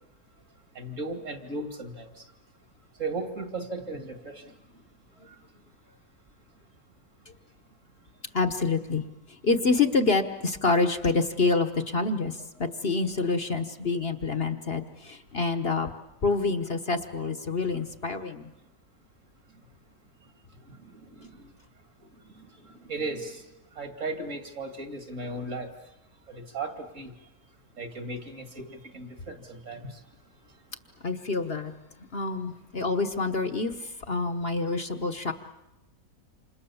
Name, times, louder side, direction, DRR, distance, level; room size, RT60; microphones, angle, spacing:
voice 1, 0.7-2.1 3.0-4.4 5.3-5.4 20.7-21.5 22.6-23.4 23.7-25.7 26.3-27.1 27.8-30.0, right 2 dB, 50° right, 6 dB, 2.8 m, -36 dB
voice 2, 8.3-9.0 9.4-15.9 16.2-18.5 31.0-31.7 32.1-35.3, left 3 dB, 40° left, 7 dB, 1.3 m, -27 dB
28.5 x 27.0 x 7.1 m, 0.95 s
omnidirectional pair, 1.7 m